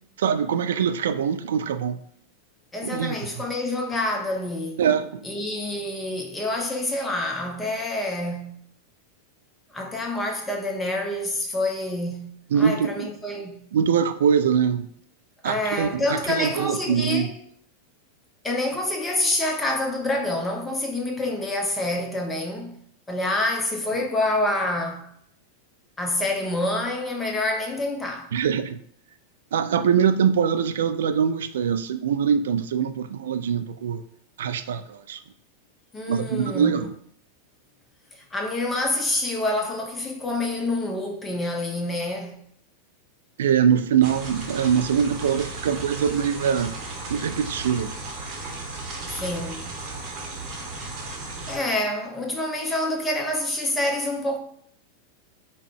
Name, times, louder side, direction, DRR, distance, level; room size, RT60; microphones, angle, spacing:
voice 1, 0.2-2.0 2.8-3.4 4.8-5.3 12.5-13.1 13.7-14.9 15.4-17.3 28.3-28.8 29.5-34.0 34.4-35.2 36.1-36.9 43.4-46.8 47.1-47.9, right 7 dB, 60° right, 0.3 m, -23 dB
voice 2, 2.7-4.8 5.2-8.6 9.7-13.6 15.4-17.4 18.4-22.8 23.1-25.1 26.0-28.3 35.9-36.9 38.1-42.4 49.1-49.7 51.5-54.4, left 1 dB, 15° left, 0.7 m, -27 dB
sound 1, 44.0-51.6, right 2 dB, 35° right, 0.9 m, -35 dB
4.8 x 2.2 x 3.6 m
figure-of-eight pair, 90°, 0 cm